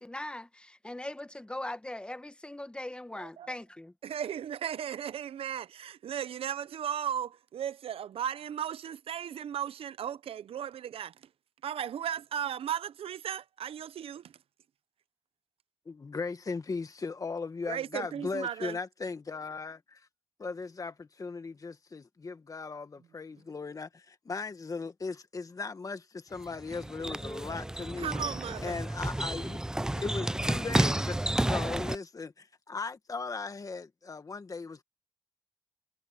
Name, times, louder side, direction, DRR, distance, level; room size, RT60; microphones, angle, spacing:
voice 1, 0.0-3.9, left 1 dB, 10° left, 1.2 m, -40 dB
voice 2, 3.1-3.5 4.0-11.1 11.6-14.3 17.7-18.8 28.0-29.1, right 9 dB, 70° right, 0.8 m, -36 dB
voice 3, 15.9-20.0 20.4-28.2 28.6-29.6 30.0-34.8, left 4 dB, 35° left, 1.9 m, -38 dB
sound 1, 26.3-32.0, right 1 dB, 5° right, 0.4 m, -31 dB
cardioid pair, 85°, 10 cm